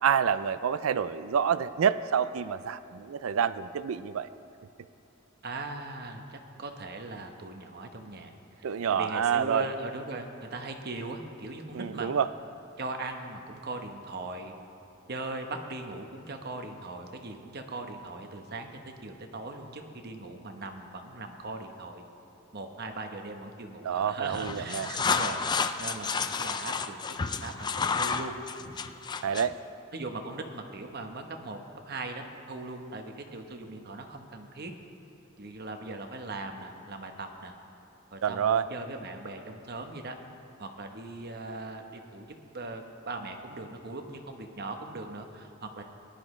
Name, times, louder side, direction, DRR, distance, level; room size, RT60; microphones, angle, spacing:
voice 1, 0.0-4.3 8.6-9.7 11.7-12.3 23.8-25.0 29.2-29.5 38.2-38.7, right 7 dB, 75° right, 14 dB, 0.4 m, -28 dB
voice 2, 5.4-12.1 12.8-14.5 15.1-18.7 19.0-22.0 22.5-27.5 27.9-28.3 29.9-31.6 31.9-34.7 35.4-37.5 38.1-40.2 40.6-42.3 42.5-45.8, right 2 dB, 50° right, 4 dB, 1.0 m, -39 dB
sound 1, 24.3-29.5, left 5 dB, 20° left, 0.3 m, -31 dB
19.0 x 11.5 x 3.2 m, 2.7 s
head